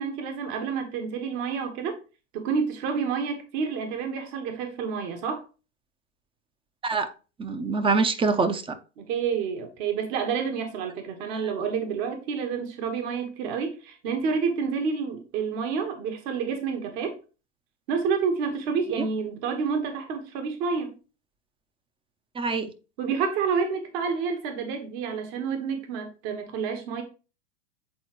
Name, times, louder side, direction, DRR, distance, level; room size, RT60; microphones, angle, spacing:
voice 1, 0.0-2.0 2.3-5.4 9.0-17.2 17.9-21.0 23.0-27.0, right 6 dB, 55° right, 1.5 m, -29 dB
voice 2, 7.4-8.8 19.0-19.1 22.4-22.7, right 4 dB, 15° right, 0.6 m, -25 dB
8.4 x 3.9 x 3.1 m
hypercardioid pair, 100°, 38 cm